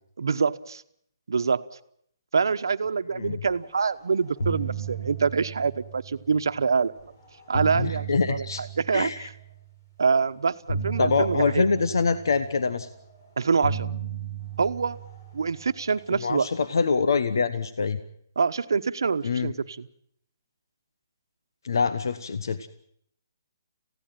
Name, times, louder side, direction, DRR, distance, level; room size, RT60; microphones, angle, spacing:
voice 1, 0.2-0.8 1.3-1.6 2.3-6.9 7.5-9.3 10.0-11.6 13.4-13.9 14.6-15.0 15.3-16.5 18.4-19.9, right 5 dB, 85° right, 11 dB, 1.0 m, -25 dB
sound 1, 3.7-4.0 4.2-6.6 7.2-9.7 10.7-13.1 13.6-16.2, right 5 dB, 50° left, 7.2 m, -35 dB
voice 2, 7.7-8.6 8.9-9.3 11.0-12.9 16.2-18.0 19.2-19.5 21.6-22.7, left 4 dB, 80° left, 12 dB, 1.1 m, -25 dB
19.0 x 16.0 x 9.2 m, 0.68 s
hypercardioid pair, 165°, 2 cm